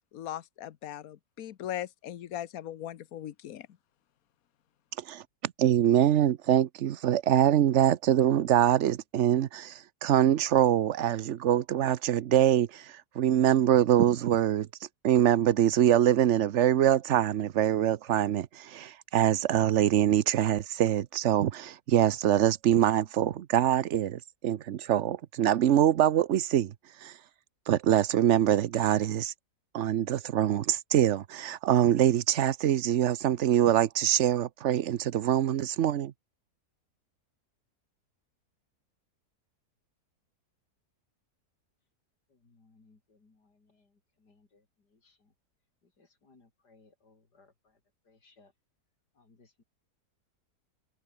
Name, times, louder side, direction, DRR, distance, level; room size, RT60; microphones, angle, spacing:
voice 1, 0.1-3.7, left 11 dB, 65° left, 1.3 m, -39 dB
voice 2, 5.1-12.9 13.2-14.7 15.0-26.7 27.0-27.1 27.7-29.3 29.7-36.1, right 11 dB, 55° right, 0.9 m, -24 dB
voice 3, 42.3-45.3 46.0-47.8 48.1-48.5 49.2-49.6, left 3 dB, 85° left, 4.5 m, -64 dB
omnidirectional pair, 1.7 m